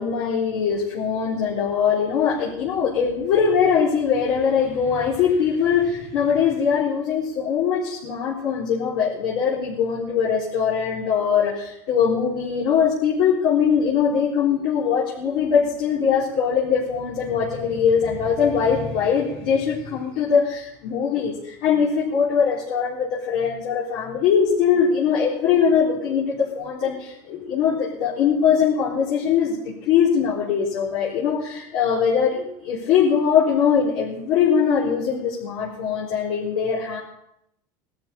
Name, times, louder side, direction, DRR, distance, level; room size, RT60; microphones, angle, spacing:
voice 1, 0.0-29.6 29.8-37.0, left 7 dB, 65° left, -6 dB, 3.7 m, -21 dB
19.5 x 13.0 x 4.3 m, 0.79 s
supercardioid pair, 135°, 9 cm